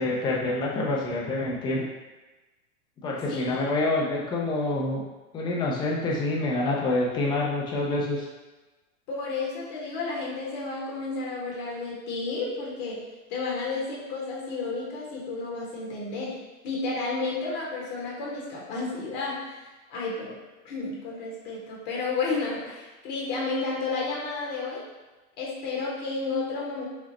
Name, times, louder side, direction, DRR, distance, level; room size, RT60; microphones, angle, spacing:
voice 1, 0.0-1.9 3.0-5.0 5.3-8.3, left 2 dB, 10° left, -3 dB, 0.3 m, -27 dB
voice 2, 3.3-3.6 9.1-13.0 13.3-16.3 16.6-19.4 19.9-20.4 20.6-24.8 25.4-26.8, left 3 dB, 55° left, -4 dB, 1.4 m, -31 dB
4.9 x 2.0 x 4.1 m, 1.2 s
hypercardioid pair, 130°, 41 cm